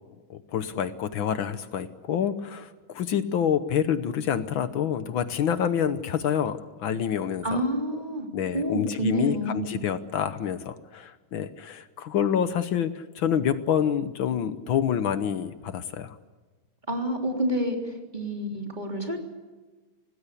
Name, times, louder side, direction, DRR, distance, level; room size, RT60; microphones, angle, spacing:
voice 1, 0.3-7.6 8.3-16.2, left 8 dB, 70° left, 12 dB, 1.8 m, -27 dB
voice 2, 7.4-8.3 8.5-9.7 16.9-19.2, right 1 dB, 20° right, 2 dB, 3.5 m, -28 dB
26.5 x 19.0 x 8.4 m, 1.3 s
omnidirectional pair, 2.3 m